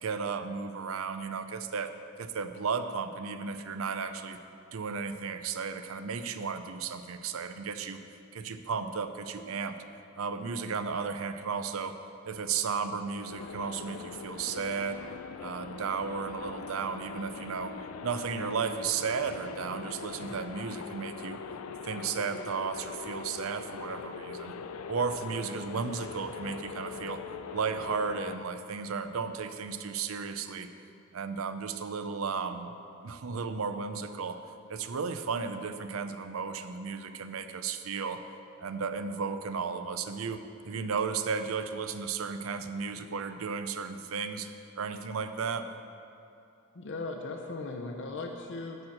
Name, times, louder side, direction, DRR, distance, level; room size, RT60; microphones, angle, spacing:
voice 1, 0.0-1.9 2.2-4.4 4.7-8.0 8.3-9.8 10.2-12.0 12.2-15.0 15.4-17.7 18.0-21.4 21.8-24.6 24.9-27.2 27.5-30.7 31.1-32.7 33.0-34.4 34.7-38.2 38.6-44.5 44.8-45.7, right 5 dB, 75° right, 9 dB, 0.5 m, -34 dB
sound 1, 13.3-28.4, left 5 dB, 90° left, 0.4 m, -42 dB
voice 2, 46.7-48.9, left 3 dB, 60° left, 2 dB, 0.7 m, -38 dB
11.0 x 4.4 x 7.6 m, 2.7 s
head